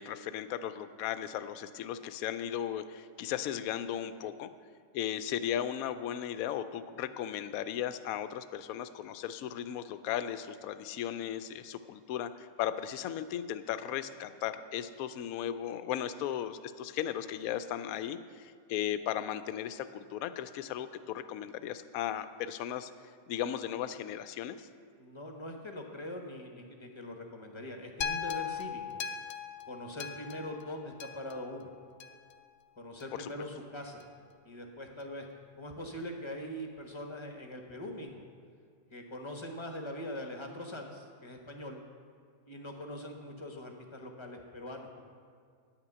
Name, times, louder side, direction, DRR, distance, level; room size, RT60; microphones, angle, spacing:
voice 1, 0.0-4.5 4.9-24.7 33.2-33.3, left 10 dB, 70° left, 12 dB, 0.9 m, -36 dB
voice 2, 25.0-29.0 29.6-31.7 32.8-34.0 34.4-35.3 35.6-38.2 38.9-41.8 42.5-45.0, left 1 dB, 20° left, 2 dB, 0.8 m, -42 dB
sound 1, 28.0-32.3 33.0-33.1, left 7 dB, 85° left, 1.2 m, -39 dB
10.5 x 5.9 x 7.8 m, 2.2 s
omnidirectional pair, 1.7 m